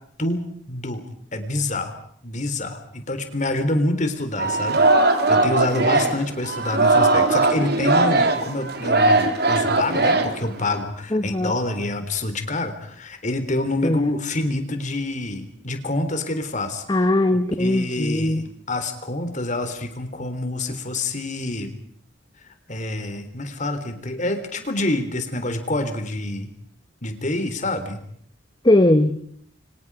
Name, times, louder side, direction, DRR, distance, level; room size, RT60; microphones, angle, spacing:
voice 1, 0.2-1.0 1.3-1.9 2.2-4.8 5.3-17.0 17.6-21.8 22.7-26.5 27.0-28.0, left 2 dB, 40° left, 8 dB, 3.8 m, -27 dB
Singing, 4.4-10.8, right 2 dB, 55° right, 3.4 m, -19 dB
voice 2, 11.1-11.5 13.8-14.1 16.9-18.4 28.6-29.2, left 1 dB, 25° left, 8 dB, 1.1 m, -19 dB
29.5 x 25.5 x 4.9 m, 0.64 s
head